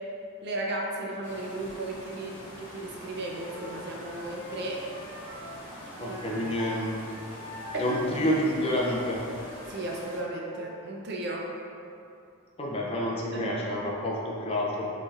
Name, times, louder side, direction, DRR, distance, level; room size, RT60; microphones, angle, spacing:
voice 1, 0.4-4.9 6.1-6.4 7.7-7.9 9.7-11.5 13.3-13.6, right 2 dB, 45° right, -1 dB, 0.4 m, -35 dB
sound 1, 1.2-10.2, left 1 dB, 90° left, 1.1 m, -45 dB
Wind instrument woodwind instrument, 3.2-6.8 7.1-10.9, equal, 70° right, 0.8 m, -44 dB
voice 2, 6.0-7.1 7.8-9.2 12.6-14.9, equal, 25° left, -3 dB, 0.4 m, -29 dB
5.0 x 3.2 x 2.4 m, 2.7 s
head